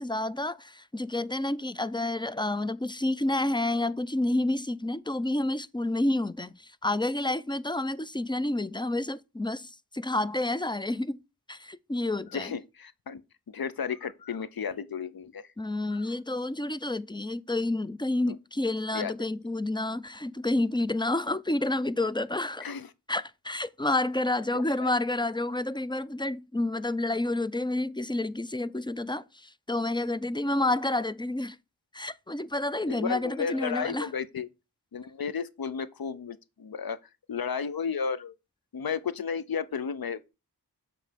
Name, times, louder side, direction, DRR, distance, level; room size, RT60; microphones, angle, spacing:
voice 1, 0.0-11.2 11.5-12.5 15.6-22.7 23.1-31.6 31.9-34.1, left 2 dB, 15° left, 0.3 m, -29 dB
voice 2, 12.3-13.2 13.5-15.5 15.9-16.1 18.3-18.4 18.9-19.1 22.6-22.9 24.5-24.9 32.9-34.5 34.9-37.0 37.3-38.3 38.7-40.3, left 6 dB, 60° left, 0.6 m, -33 dB
7.3 x 3.2 x 5.1 m
wide cardioid pair, 50°, 40 cm